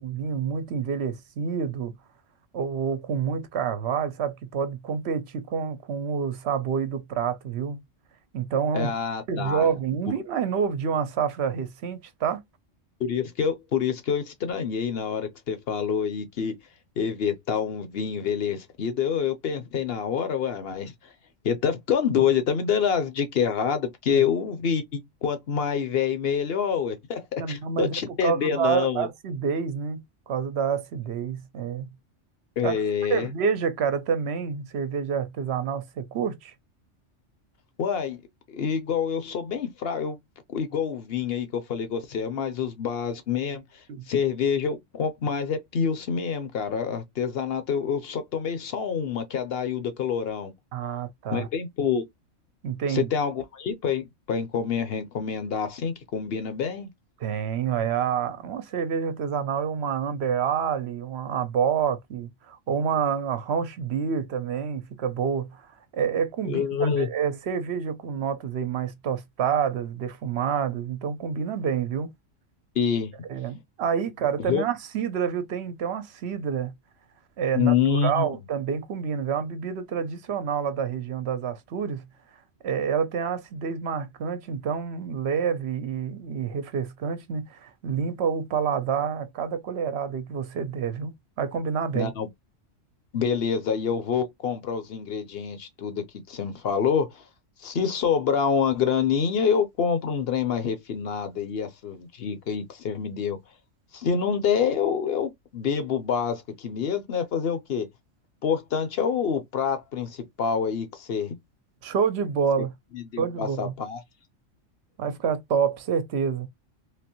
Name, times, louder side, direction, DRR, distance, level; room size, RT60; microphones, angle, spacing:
voice 1, 0.0-1.9 2.5-7.8 8.3-8.9 9.3-12.4 24.1-24.2 27.4-31.9 32.6-32.7 33.1-36.5 43.9-44.0 50.7-51.5 52.6-53.1 57.2-65.7 65.9-72.1 73.3-76.7 77.4-82.0 82.6-92.1 111.8-112.7 113.2-113.7 115.0-116.5, right 7 dB, 60° right, 0.9 m, -28 dB
voice 2, 8.7-9.7 13.0-16.5 17.0-20.9 21.4-29.1 32.6-33.3 37.8-38.2 38.5-40.2 40.5-43.6 44.1-50.5 51.3-52.0 52.9-56.9 66.4-67.1 72.7-73.1 74.5-74.6 77.5-78.3 91.9-92.3 93.1-97.2 97.6-103.4 103.9-107.9 108.4-111.3 112.9-114.0, left 7 dB, 55° left, 1.0 m, -27 dB
3.5 x 3.0 x 2.9 m
omnidirectional pair, 1.3 m